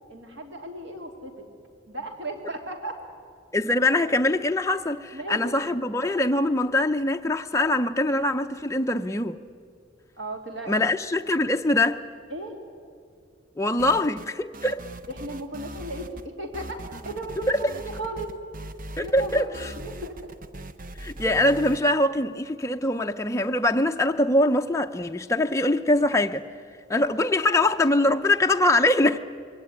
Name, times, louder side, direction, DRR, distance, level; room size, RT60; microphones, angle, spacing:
voice 1, 0.1-1.5 1.9-3.0 5.1-5.6 10.2-10.9 12.3-12.6 15.1-18.3 19.0-20.2, right 1 dB, 65° right, 3.2 m, -36 dB
voice 2, 3.5-9.4 10.7-12.0 13.6-14.8 17.5-17.6 19.0-19.7 21.0-26.5 26.9-29.2, left 1 dB, 15° left, 0.5 m, -23 dB
sound 1, 13.8-14.3 14.5-16.3 16.5-21.8, right 1 dB, 40° right, 0.8 m, -40 dB
22.5 x 18.0 x 9.7 m
head